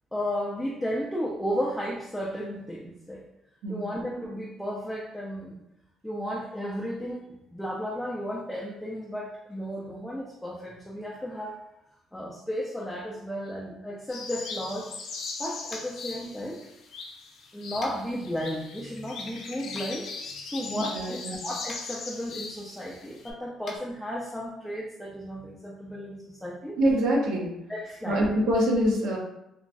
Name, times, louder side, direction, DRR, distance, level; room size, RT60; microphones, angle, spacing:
voice 1, 0.1-3.2 3.7-5.6 6.0-7.3 7.5-11.6 12.1-14.9 15.4-16.6 17.5-20.1 20.5-26.8 27.7-28.2, equal, 5° left, -4 dB, 0.4 m, -34 dB
sound 1, 14.1-23.3, left 4 dB, 60° left, 0.5 m, -39 dB
Tap, 15.7-16.0 17.8-18.0 19.7-19.8 21.6-21.8 23.6-23.8, left 1 dB, 30° left, 0.7 m, -42 dB
voice 2, 20.8-21.4 26.8-27.5 28.0-29.2, equal, 90° right, -3 dB, 0.8 m, -25 dB
3.1 x 2.1 x 2.5 m, 0.84 s
cardioid pair, 130°, 0 cm